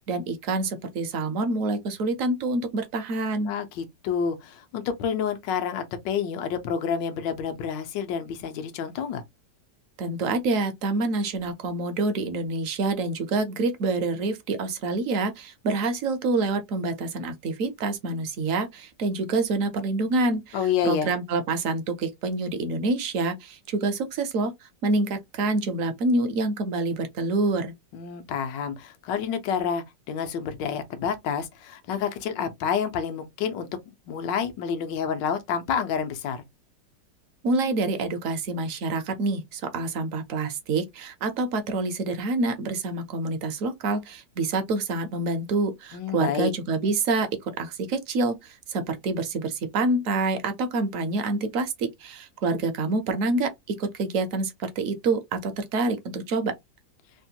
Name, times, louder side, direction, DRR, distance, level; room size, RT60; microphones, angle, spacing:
voice 1, 0.0-3.5 10.0-20.6 20.8-24.5 24.8-27.7 37.4-53.5 53.8-56.5, right 3 dB, 70° right, 0.8 m, -27 dB
voice 2, 3.5-9.2 20.5-21.1 27.9-36.4 45.9-46.5, left 7 dB, 85° left, 1.3 m, -29 dB
3.4 x 2.2 x 2.7 m
omnidirectional pair, 1.9 m